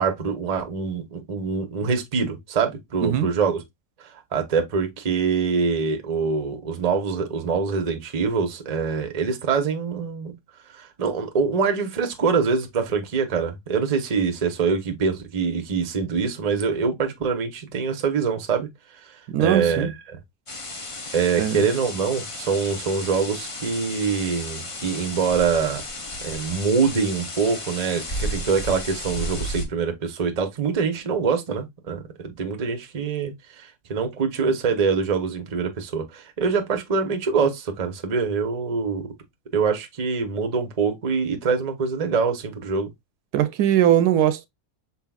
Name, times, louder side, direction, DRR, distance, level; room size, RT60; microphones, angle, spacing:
voice 1, 0.0-3.6 4.3-10.3 10.7-18.7 19.4-19.9 21.1-25.8 26.2-39.1 39.5-42.9, right 5 dB, 35° right, 0.7 m, -24 dB
voice 2, 19.3-19.9 21.4-21.6 43.3-44.5, right 11 dB, 80° right, 1.1 m, -20 dB
sound 1, 20.5-29.7, left 1 dB, 30° left, 0.5 m, -33 dB
5.7 x 4.1 x 2.3 m
omnidirectional pair, 1.7 m